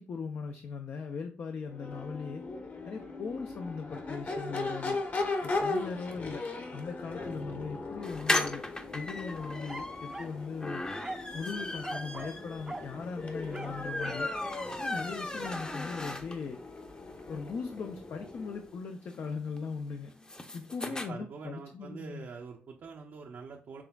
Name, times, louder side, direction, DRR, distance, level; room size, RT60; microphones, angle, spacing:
voice 1, 0.0-2.4 2.8-5.0 5.4-6.4 6.7-8.6 8.9-10.8 11.3-14.3 14.8-16.6 17.2-20.1 20.5-22.3, left 5 dB, 65° left, 5 dB, 0.5 m, -39 dB
Crowd / Race car auto racing / Accelerating revving vroom, 1.6-18.7, left 3 dB, 45° left, 1.1 m, -39 dB
sound 1, 8.0-16.6 17.0-17.1 17.3-17.4 17.7-21.1, left 2 dB, 20° left, 0.7 m, -37 dB
sound 2, 9.7-10.4 11.0-11.3 11.8-12.4 12.7-12.9 13.5-14.3 15.4-15.7, right 2 dB, 20° right, 0.5 m, -42 dB
voice 2, 20.8-23.8, right 5 dB, 70° right, 0 dB, 0.6 m, -45 dB
6.1 x 3.4 x 2.3 m, 0.40 s
cardioid pair, 70°, 4 cm